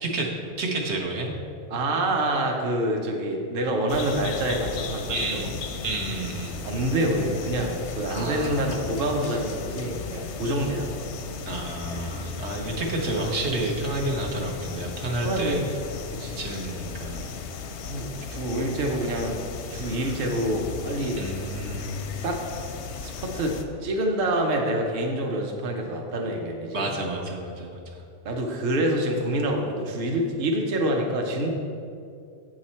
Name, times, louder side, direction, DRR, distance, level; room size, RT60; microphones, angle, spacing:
voice 1, 0.0-1.3 5.1-5.6 5.8-6.6 8.1-8.8 11.5-15.6 16.4-17.3 21.2-21.9 26.7-28.0, right 2 dB, 85° right, -1 dB, 1.4 m, -30 dB
voice 2, 1.7-5.5 6.6-10.9 15.2-15.7 16.1-16.4 17.9-19.4 19.7-21.2 22.2-22.4 23.0-26.9 28.2-31.5, right 1 dB, 55° right, 1 dB, 0.9 m, -27 dB
sound 1, 3.9-23.6, left 5 dB, 90° left, 0.9 m, -36 dB
8.0 x 6.3 x 4.3 m, 2.5 s
omnidirectional pair, 1.1 m